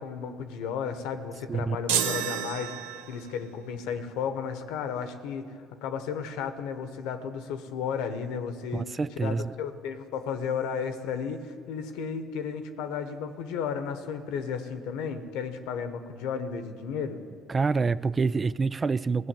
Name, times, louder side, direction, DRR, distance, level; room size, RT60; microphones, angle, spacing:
voice 1, 0.0-8.9 9.2-17.2, left 6 dB, 75° left, 9 dB, 1.1 m, -33 dB
sound 1, 1.9-3.4, right 9 dB, 80° right, 0.6 m, -30 dB
voice 2, 8.7-9.5 17.5-19.3, right 4 dB, 30° right, 17 dB, 0.3 m, -27 dB
16.5 x 6.2 x 9.0 m, 2.5 s
hypercardioid pair, 60°, 0 cm